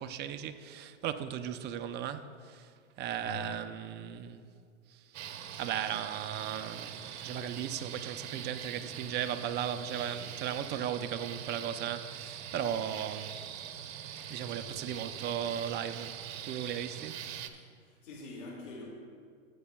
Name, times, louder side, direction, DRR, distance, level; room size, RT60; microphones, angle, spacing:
voice 1, 0.0-2.7 3.0-4.5 4.9-5.2 5.6-13.3 14.3-17.3, right 9 dB, 25° right, 0.6 m, -36 dB
voice 2, 3.2-3.6 14.6-15.1 17.8-18.9, left 4 dB, 75° left, 2.4 m, -45 dB
sound 1, 5.1-17.5, right 9 dB, 60° right, 1.0 m, -43 dB
22.5 x 8.4 x 2.3 m
hypercardioid pair, 110°, 38 cm